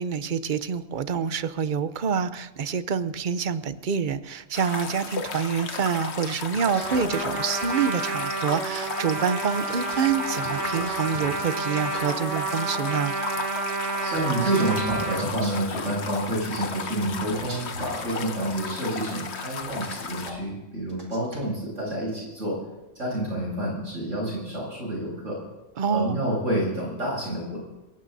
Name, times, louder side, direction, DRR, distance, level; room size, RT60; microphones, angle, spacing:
voice 1, 0.0-13.1 25.8-26.2, right 6 dB, 50° right, 13 dB, 0.7 m, -27 dB
sound 1, 4.5-20.3, left 5 dB, 60° left, 1.3 m, -35 dB
sound 2, 6.5-8.0 9.7-12.0 14.2-15.7 17.0-18.6 19.6-20.4 20.9-21.5, right 1 dB, 70° right, 2.9 m, -42 dB
Trumpet, 6.7-15.2, right 3 dB, 25° right, 1.5 m, -30 dB
voice 2, 14.0-22.6 22.9-25.4 25.9-27.6, right 1 dB, 90° right, -3 dB, 8.0 m, -28 dB
27.0 x 17.0 x 2.7 m, 1.0 s
omnidirectional pair, 1.3 m